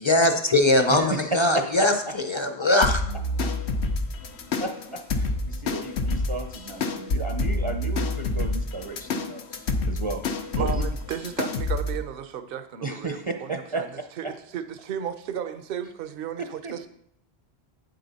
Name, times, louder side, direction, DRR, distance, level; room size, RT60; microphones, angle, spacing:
voice 1, 0.0-3.0, left 1 dB, 30° left, 0.7 m, -21 dB
voice 2, 0.9-1.9 3.4-3.5 4.6-10.8 12.8-13.8 14.2-14.3 16.6-16.7, right 2 dB, 35° right, 0.6 m, -33 dB
sound 1, 2.8-12.0, left 2 dB, 85° left, 1.1 m, -28 dB
voice 3, 10.6-13.2 13.8-13.9 14.2-16.9, right 8 dB, 60° right, 0.8 m, -34 dB
8.7 x 8.0 x 4.1 m
omnidirectional pair, 1.1 m